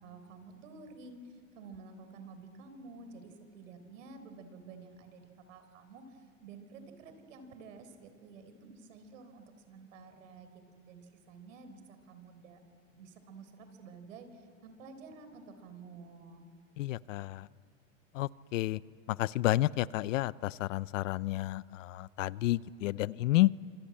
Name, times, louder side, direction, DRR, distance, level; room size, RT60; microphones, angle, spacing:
voice 1, 0.0-12.6 12.9-16.4, right 4 dB, 70° right, 9 dB, 4.2 m, -51 dB
voice 2, 16.8-17.5 18.1-18.8 19.1-23.5, left 17 dB, 70° left, 20 dB, 0.6 m, -30 dB
26.5 x 26.0 x 8.7 m, 2.2 s
supercardioid pair, 165°, 40 cm